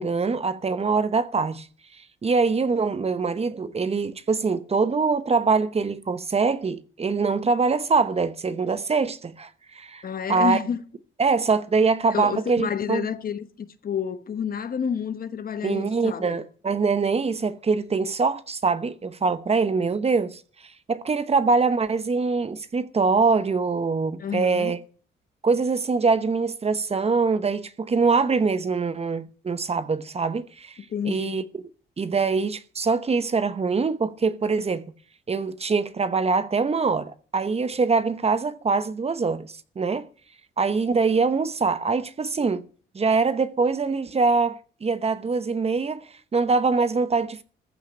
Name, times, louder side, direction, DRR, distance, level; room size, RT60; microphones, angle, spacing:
voice 1, 0.0-1.7 2.2-10.0 10.3-10.6 11.2-13.1 15.6-20.4 20.9-24.8 25.4-30.8 31.0-31.6 32.0-34.9 35.3-40.1 40.6-42.6 42.9-47.4, right 4 dB, 30° right, 1.0 m, -23 dB
voice 2, 10.0-10.8 12.1-16.4 24.2-24.7 30.9-31.4, left 7 dB, 45° left, 1.2 m, -29 dB
14.5 x 5.8 x 8.1 m
cardioid pair, 90°, 20 cm